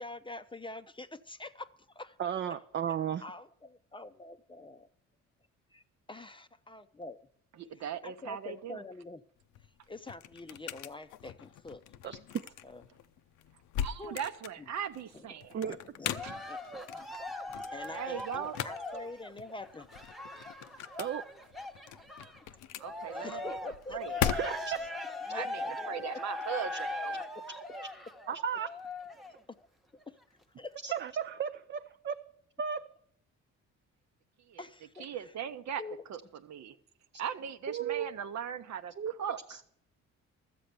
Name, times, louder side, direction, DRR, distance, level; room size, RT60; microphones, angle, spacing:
voice 1, 0.0-2.2 3.2-4.9 5.7-5.8 6.1-7.2 8.0-9.2 9.9-11.8 12.6-12.8 14.0-14.2 15.1-15.3 15.6-16.1 16.5-17.1 17.7-19.9 23.1-24.0 25.3-26.1 29.5-29.6 30.1-30.2 30.6-30.8 34.6-35.3 35.8-36.0, left 2 dB, 15° left, 10 dB, 0.5 m, -45 dB
voice 2, 2.2-3.2 12.0-12.2 15.5-15.8 21.0-21.2 24.2-24.9 28.3-28.7 30.8-32.2 32.6-32.8 37.7-38.1 39.0-39.1, right 8 dB, 40° right, 8 dB, 0.5 m, -34 dB
voice 3, 7.6-8.8 13.8-15.6 16.2-16.4 17.9-18.5 22.8-23.6 23.9-24.2 25.3-27.2 34.5-34.6 35.0-35.8 36.1-36.8 37.2-38.9 39.2-39.4, right 8 dB, 65° right, 11 dB, 0.8 m, -39 dB
sound 1, 9.4-24.9, left 10 dB, 80° left, 0.6 m, -40 dB
Cheering, 16.1-22.4 22.8-29.4 30.0-30.1, left 2 dB, ahead, 1.0 m, -40 dB
13.0 x 7.7 x 6.9 m, 0.65 s
cardioid pair, 90°, 30 cm